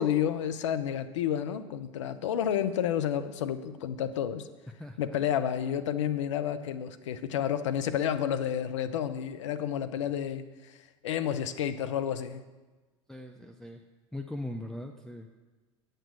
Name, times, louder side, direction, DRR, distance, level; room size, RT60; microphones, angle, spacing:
voice 1, 0.0-4.5 5.0-10.8 11.0-12.4, left 9 dB, 80° left, 12 dB, 0.6 m, -30 dB
voice 2, 4.8-5.2 13.1-13.8 14.1-15.3, left 1 dB, 5° left, 5 dB, 0.6 m, -40 dB
9.1 x 6.6 x 6.2 m, 1.2 s
hypercardioid pair, 85°, 15 cm